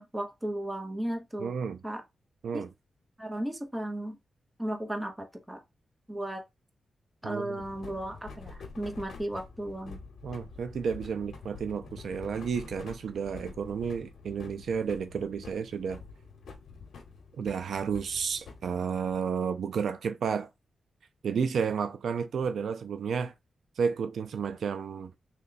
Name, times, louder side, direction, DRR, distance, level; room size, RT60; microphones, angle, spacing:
voice 1, 0.0-1.5 1.8-2.0 2.5-2.7 3.2-4.2 4.6-5.6 6.1-6.4 7.2-10.0, right 1 dB, 10° right, 0.7 m, -35 dB
voice 2, 1.4-1.8 2.4-2.7 7.2-7.6 10.2-16.0 17.4-20.5 21.2-23.3 23.8-25.1, right 6 dB, 70° right, 0.3 m, -31 dB
sound 1, 7.6-19.4, left 4 dB, 75° left, 0.8 m, -47 dB
3.3 x 2.2 x 3.9 m
wide cardioid pair, 170°, 0 cm